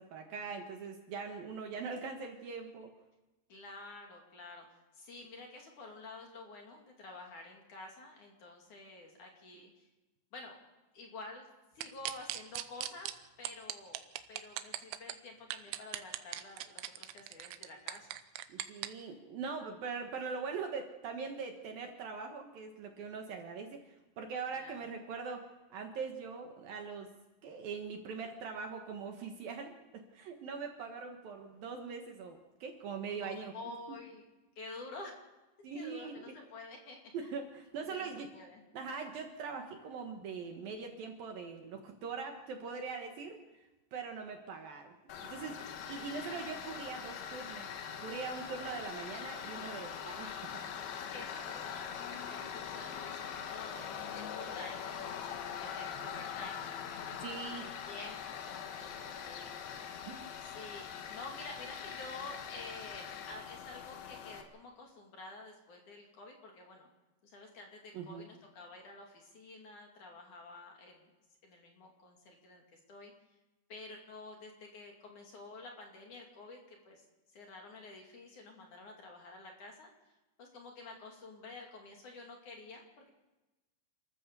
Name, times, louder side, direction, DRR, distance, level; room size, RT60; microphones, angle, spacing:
voice 1, 0.0-2.9 18.5-27.1 27.4-33.5 33.9-34.0 35.6-36.2 37.1-38.3 38.7-43.4 43.9-47.7 48.0-50.6 57.2-57.7 60.1-60.3 67.9-68.3, right 5 dB, 60° right, 4 dB, 2.8 m, -42 dB
voice 2, 3.5-4.7 4.9-9.8 10.3-10.6 10.9-11.5 11.7-13.1 13.4-14.0 14.3-18.1 24.5-24.7 33.2-34.3 34.6-35.3 35.7-37.3 37.9-38.6 51.1-52.0 52.3-53.9 54.3-56.6 57.5-60.0 60.4-66.9 67.2-71.1 71.4-73.1 73.7-77.1 77.3-79.9 80.4-83.1, left 2 dB, 45° left, 1 dB, 3.6 m, -50 dB
sound 1, 11.8-13.1 13.4-15.1 15.5-18.9, right 14 dB, 85° right, 3.2 m, -39 dB
Tools, 45.1-64.4, left 8 dB, 65° left, 3.1 m, -42 dB
28.0 x 14.0 x 6.8 m, 1.1 s
omnidirectional pair, 5.2 m